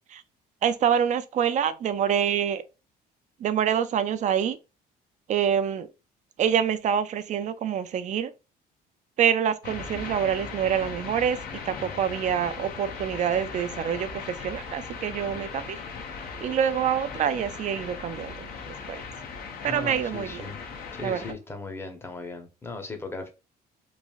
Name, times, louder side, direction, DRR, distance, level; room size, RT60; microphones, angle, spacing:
voice 1, 0.6-2.6 3.4-4.6 5.3-5.9 6.4-8.3 9.2-11.4 11.6-15.8 16.4-18.5 18.9-19.0 19.6-20.5 21.0-21.2, right 8 dB, 45° right, 0.4 m, -26 dB
sound 1, 9.6-21.3, left 5 dB, 65° left, 0.6 m, -38 dB
voice 2, 15.3-15.6 19.6-20.6 20.9-23.3, left 3 dB, 15° left, 0.7 m, -38 dB
3.1 x 2.5 x 2.3 m
cardioid pair, 110°, 17 cm